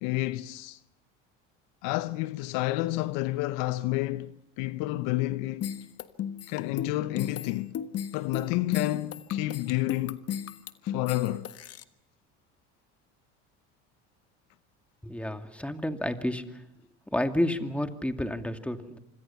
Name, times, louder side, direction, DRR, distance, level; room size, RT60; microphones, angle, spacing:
voice 1, 0.0-0.8 1.8-5.7 6.5-7.8 8.1-10.2 10.8-11.5, left 17 dB, 70° left, 0.9 m, -30 dB
sound 1, 5.6-11.8, left 9 dB, 45° left, 1.5 m, -35 dB
voice 2, 15.0-16.4 17.1-19.0, left 1 dB, 5° left, 2.4 m, -30 dB
26.0 x 26.0 x 5.8 m
hypercardioid pair, 75°, 33 cm